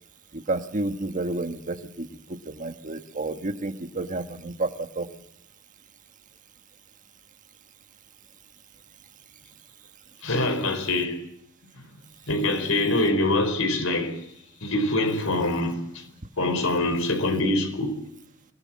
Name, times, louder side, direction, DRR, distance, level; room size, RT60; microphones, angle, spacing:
voice 1, 0.3-2.1 2.5-5.1, right 2 dB, 40° right, 1.5 m, -30 dB
voice 2, 10.2-11.2 12.3-14.2 14.6-16.1 16.4-18.0, left 2 dB, 85° left, 4.8 m, -24 dB
25.0 x 18.0 x 7.6 m
head